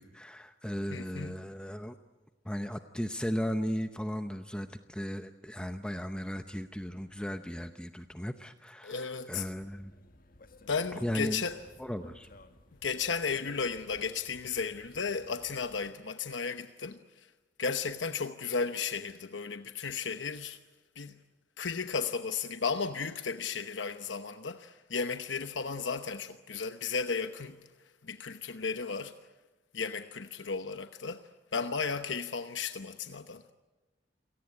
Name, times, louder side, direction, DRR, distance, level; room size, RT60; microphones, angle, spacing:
voice 1, 0.0-2.0 2.4-9.9 11.0-11.5 11.8-12.3, equal, 5° left, 0.7 m, -36 dB
voice 2, 0.9-1.3 8.8-9.4 10.7-11.6 12.8-17.3 17.6-20.6 21.0-21.2 21.6-27.6 28.0-29.1 29.7-33.4, left 5 dB, 85° left, 0.9 m, -34 dB
sound 1, 9.6-15.9, left 2 dB, 50° left, 1.8 m, -56 dB
28.5 x 18.5 x 9.7 m
head